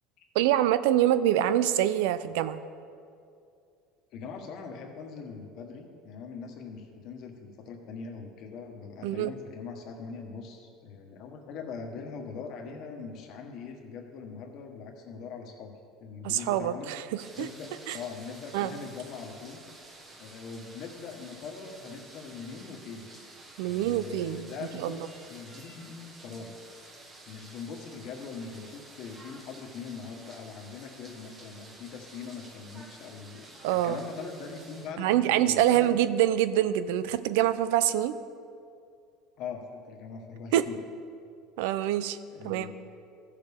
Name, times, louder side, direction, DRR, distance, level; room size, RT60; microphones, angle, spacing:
voice 1, 0.3-2.6 9.0-9.3 16.2-17.5 17.9-18.0 18.5-18.7 23.6-24.5 24.8-25.1 33.6-34.0 35.0-38.2 40.5-40.7 41.6-42.2 42.4-42.7, right 12 dB, 85° right, 14 dB, 0.4 m, -25 dB
voice 2, 4.1-16.9 17.4-19.6 20.2-23.1 23.6-25.0 25.3-26.5 27.3-36.0 39.4-40.8 42.3-42.7, left 5 dB, 55° left, 2 dB, 1.3 m, -42 dB
sound 1, 17.2-34.9, right 2 dB, 25° right, 1.2 m, -51 dB
14.5 x 6.6 x 3.5 m, 2.4 s
supercardioid pair, 130°, 0 cm